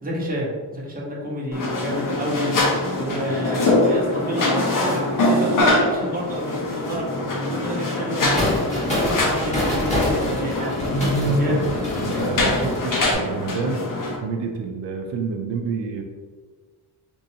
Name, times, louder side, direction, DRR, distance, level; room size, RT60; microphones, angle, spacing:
voice 1, 0.0-7.1 7.5-10.7 11.4-11.6, right 1 dB, 20° right, -5 dB, 1.1 m, -29 dB
sound 1, 1.5-14.2, left 2 dB, 50° left, 0.8 m, -23 dB
sound 2, 8.3-13.1, left 1 dB, 15° left, 1.4 m, -26 dB
voice 2, 11.2-13.8 14.2-16.0, right 5 dB, 85° right, 3 dB, 0.5 m, -29 dB
4.5 x 2.5 x 2.8 m, 1.5 s
cardioid pair, 85°, 42 cm